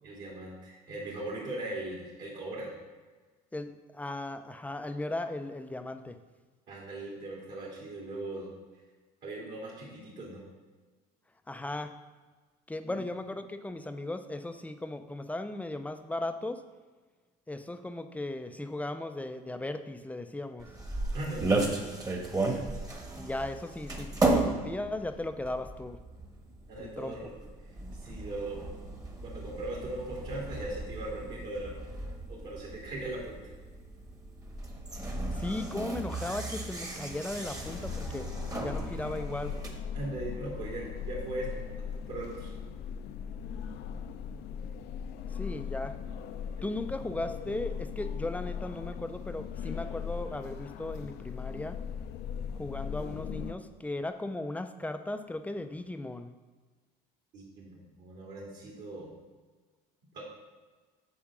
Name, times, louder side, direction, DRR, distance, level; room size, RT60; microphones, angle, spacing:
voice 1, 0.0-2.7 6.7-8.5 9.2-10.4 12.8-13.0 21.1-21.6 26.7-27.3 28.0-28.7 29.2-31.7 32.0-33.4 39.9-41.7 42.0-42.5 57.3-59.1 60.1-60.3, right 2 dB, 55° right, -5 dB, 2.5 m, -39 dB
voice 2, 3.5-6.2 11.5-11.9 12.7-16.6 17.5-20.7 23.2-26.0 26.8-27.2 35.3-38.3 38.6-39.6 45.3-45.9 46.6-51.8 52.5-56.4, left 2 dB, 10° left, 8 dB, 0.5 m, -37 dB
sound 1, 20.6-39.7, right 2 dB, 20° right, 1.3 m, -35 dB
sound 2, 37.6-53.5, left 7 dB, 60° left, 0.6 m, -39 dB
7.4 x 4.3 x 6.1 m, 1.3 s
supercardioid pair, 100°, 19 cm